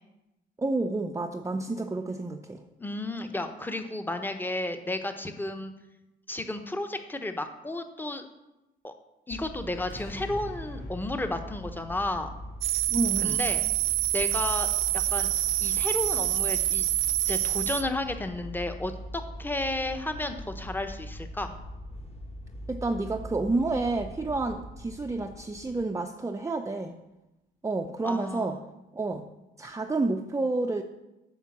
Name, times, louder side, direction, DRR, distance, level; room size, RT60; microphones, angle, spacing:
voice 1, 0.6-2.6 12.9-13.4 22.7-26.9 27.6-28.6 28.9-29.2 29.6-30.8, right 2 dB, 15° right, 4 dB, 0.6 m, -29 dB
voice 2, 2.8-5.7 6.3-8.3 8.8-8.9 9.3-12.3 13.2-13.6 14.1-15.3 15.6-16.9 17.3-21.5 28.0-28.6, left 2 dB, 10° left, 7 dB, 1.0 m, -33 dB
sound 1, 9.3-25.9, equal, 30° left, 1.4 m, -42 dB
sound 2, 9.9-15.0 15.5-15.6, left 2 dB, 55° left, 3.2 m, -49 dB
sound 3, 12.6-17.8, right 14 dB, 85° right, 0.5 m, -26 dB
8.2 x 5.7 x 7.3 m, 0.98 s
cardioid pair, 90°, 20 cm